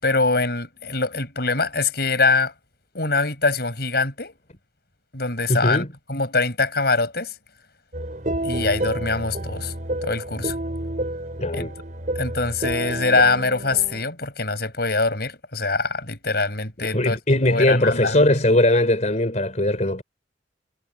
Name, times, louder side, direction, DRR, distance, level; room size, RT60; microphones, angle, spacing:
voice 1, 0.0-2.5 2.9-4.3 5.1-5.8 6.1-7.3 8.4-9.7 10.0-10.5 11.5-11.7 12.2-18.4, left 3 dB, 60° left, 7.5 m, -23 dB
voice 2, 5.5-5.9 11.4-11.7 16.8-20.0, left 1 dB, 40° left, 4.0 m, -20 dB
sound 1, 7.9-14.0, right 1 dB, 45° right, 4.7 m, -29 dB
head